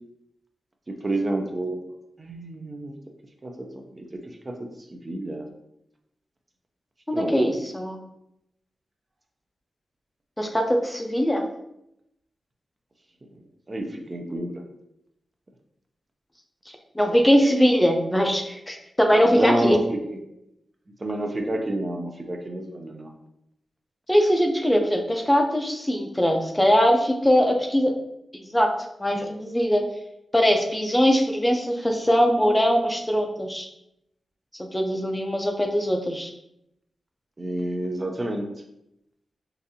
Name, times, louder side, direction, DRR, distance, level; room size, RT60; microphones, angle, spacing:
voice 1, 1.0-1.8 2.2-2.9 3.4-3.5 3.9-4.0 5.0-5.5 7.1-7.4 13.7-14.5 19.3-20.2 21.0-23.1 37.4-38.5, right 1 dB, 35° right, 3 dB, 0.5 m, -28 dB
voice 2, 7.1-8.0 10.4-11.4 17.0-19.8 24.1-27.9 28.5-28.7 29.0-29.8 30.3-33.7 34.6-36.3, equal, 15° left, 2 dB, 0.5 m, -21 dB
4.0 x 2.5 x 2.7 m, 0.81 s
cardioid pair, 60°, 0 cm